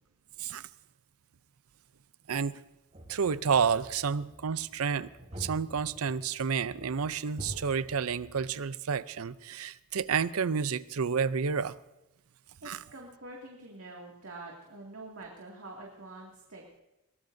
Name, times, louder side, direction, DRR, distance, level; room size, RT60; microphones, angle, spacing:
voice 1, 2.3-2.6 3.1-5.1 5.4-11.8 12.6-12.8, right 6 dB, 85° right, 0.6 m, -30 dB
sound 1, 2.9-8.5, equal, 35° right, 3.8 m, -47 dB
voice 2, 12.6-16.8, right 2 dB, 70° right, 2.4 m, -46 dB
22.0 x 18.5 x 2.7 m
head